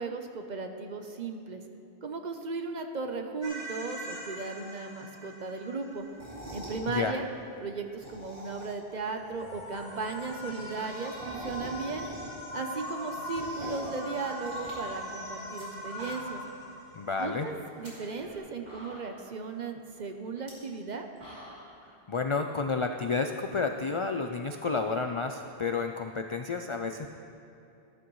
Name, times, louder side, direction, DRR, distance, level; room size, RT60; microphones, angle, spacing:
voice 1, 0.0-1.6 2.0-6.1 6.5-7.3 7.6-12.1 12.5-16.4 17.2-21.1, right 4 dB, 45° right, 5 dB, 0.8 m, -36 dB
sound 1, 3.4-6.6 8.9-18.4, equal, 85° left, 2.9 m, -42 dB
sound 2, 6.1-6.8 7.8-8.9 9.3-9.4 9.6-9.7 9.9-10.0 10.3-12.5 12.8-13.9 14.4-15.6 15.9-16.5 16.8-16.9 17.6-17.9 18.4-18.5 18.7-19.3 20.3-20.5 20.9-21.7, equal, 75° right, 3.5 m, -45 dB
voice 2, 16.9-17.5 22.1-27.1, left 4 dB, 55° left, 5 dB, 0.3 m, -30 dB
15.0 x 11.0 x 3.1 m, 2.8 s
omnidirectional pair, 1.1 m